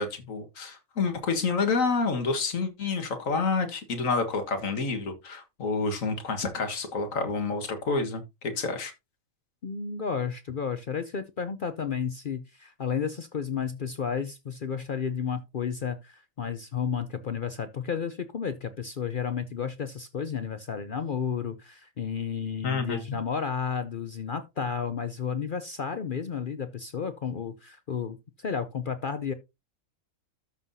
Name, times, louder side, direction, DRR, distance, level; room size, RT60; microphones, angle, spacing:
voice 1, 0.0-8.9 22.6-23.2, left 4 dB, 70° left, 1.9 m, -29 dB
voice 2, 9.6-29.3, left 6 dB, 50° left, 0.7 m, -32 dB
13.0 x 5.5 x 2.7 m
omnidirectional pair, 1.4 m